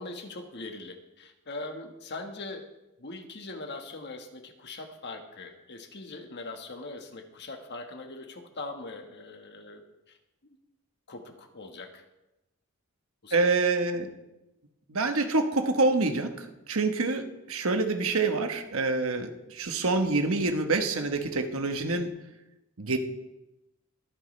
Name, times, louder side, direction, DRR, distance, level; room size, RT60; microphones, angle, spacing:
voice 1, 0.0-2.7 3.0-10.2 10.4-10.6 11.1-12.0 13.2-13.5, left 2 dB, 50° left, 5 dB, 1.5 m, -41 dB
voice 2, 13.3-14.1 14.9-22.1 22.8-23.0, right 3 dB, 70° right, 6 dB, 1.2 m, -26 dB
22.0 x 9.3 x 3.3 m, 0.96 s
head